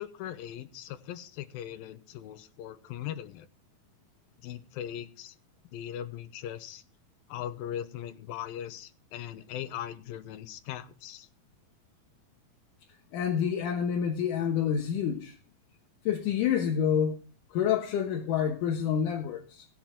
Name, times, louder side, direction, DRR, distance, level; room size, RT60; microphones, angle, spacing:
voice 1, 0.0-3.5 4.4-5.3 5.7-6.8 7.3-11.3, left 11 dB, 90° left, 2.7 m, -39 dB
voice 2, 13.1-15.4 16.1-17.2 17.5-19.7, left 8 dB, 70° left, 2.6 m, -28 dB
16.5 x 7.9 x 4.4 m
omnidirectional pair, 4.0 m